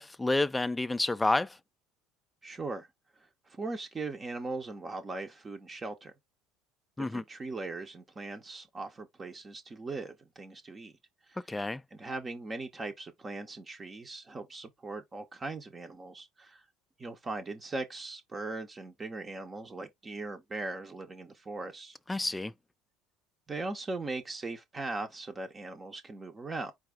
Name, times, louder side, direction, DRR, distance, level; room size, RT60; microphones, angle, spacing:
voice 1, 0.0-1.6 7.0-7.2 11.5-11.8 22.1-22.5, left 2 dB, 10° left, 0.3 m, -29 dB
voice 2, 2.4-2.9 3.5-6.1 7.0-10.9 11.3-11.4 11.9-16.6 17.0-22.0 23.5-26.7, right 3 dB, 25° right, 0.7 m, -39 dB
4.7 x 2.4 x 3.5 m
hypercardioid pair, 65°, 0 cm